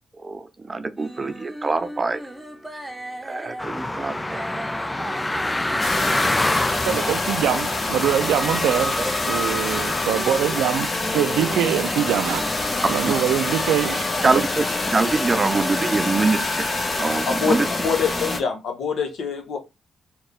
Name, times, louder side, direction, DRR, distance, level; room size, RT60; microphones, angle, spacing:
voice 1, 0.2-2.2 2.7-2.8 3.2-4.5 9.0-9.1 12.8-13.2 14.2-17.7, right 3 dB, 35° right, 0.6 m, -24 dB
sound 1, 1.0-15.4, right 1 dB, 10° right, 0.9 m, -37 dB
sound 2, 3.6-10.1, left 1 dB, 20° left, 0.3 m, -27 dB
sound 3, 5.8-18.4, left 2 dB, 40° left, 1.0 m, -26 dB
voice 2, 6.9-8.9 9.3-12.4 12.9-14.3, right 10 dB, 85° right, 0.4 m, -23 dB
voice 3, 17.3-17.6 17.8-19.6, left 6 dB, 70° left, 1.0 m, -25 dB
4.4 x 2.4 x 3.2 m
supercardioid pair, 45°, 0 cm